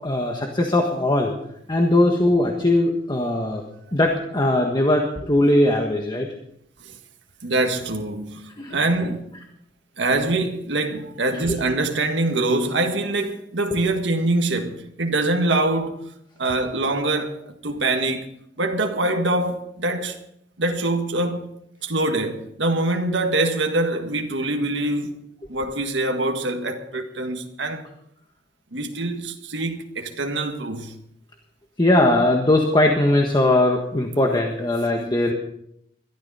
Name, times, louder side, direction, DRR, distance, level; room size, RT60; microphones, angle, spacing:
voice 1, 0.0-1.3 1.7-3.6 3.9-6.3 8.6-8.8 9.0-9.1 11.3-11.6 13.7-13.8 31.8-35.3, left 1 dB, 25° left, 1.4 m, -20 dB
voice 2, 7.4-9.3 10.0-16.1 16.4-17.4 17.6-18.3 18.6-20.2 20.6-21.5 21.8-25.1 25.5-27.8 28.7-30.9, right 2 dB, 75° right, 1.7 m, -24 dB
22.0 x 13.0 x 4.2 m
head